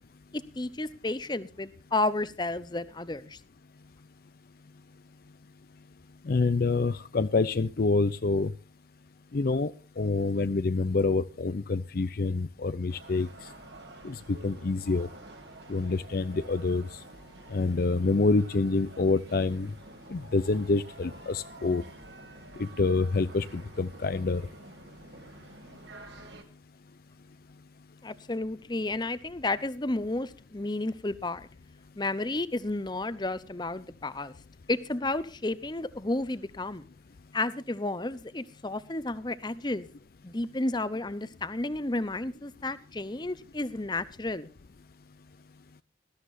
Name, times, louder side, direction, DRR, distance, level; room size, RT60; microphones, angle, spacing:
voice 1, 0.3-3.4 28.0-31.5 32.0-34.3 34.7-36.9 37.3-39.9 40.2-44.5, left 2 dB, 25° left, 0.7 m, -32 dB
voice 2, 6.3-8.5 9.3-9.7 10.0-13.3 14.0-15.1 15.7-16.9 17.5-19.7 20.1-21.8 22.6-24.4, left 3 dB, 50° left, 0.5 m, -27 dB
sound 1, 12.9-26.4, right 2 dB, 70° right, 2.7 m, -49 dB
20.0 x 13.5 x 2.6 m
head